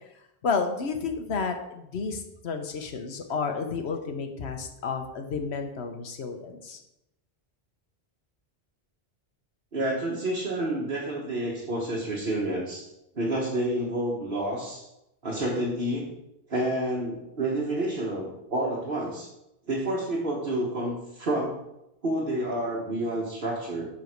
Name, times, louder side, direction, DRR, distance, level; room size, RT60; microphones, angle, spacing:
voice 1, 0.4-6.8, left 5 dB, 85° left, 5 dB, 1.2 m, -31 dB
voice 2, 9.7-12.9 13.1-14.9 15.2-16.1 16.5-19.3 19.7-21.6 22.0-23.9, right 1 dB, 60° right, -5 dB, 1.6 m, -29 dB
7.8 x 4.1 x 6.5 m, 0.86 s
omnidirectional pair, 1.1 m